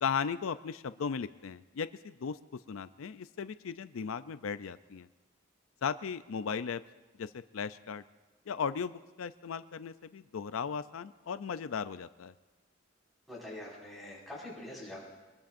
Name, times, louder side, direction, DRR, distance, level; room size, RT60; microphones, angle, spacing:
voice 1, 0.0-2.4 2.7-5.1 5.8-6.8 7.2-8.0 8.5-12.3, left 6 dB, 90° left, 13 dB, 0.4 m, -36 dB
voice 2, 13.3-15.0, left 1 dB, ahead, -6 dB, 5.2 m, -44 dB
24.5 x 20.0 x 2.6 m, 1.2 s
head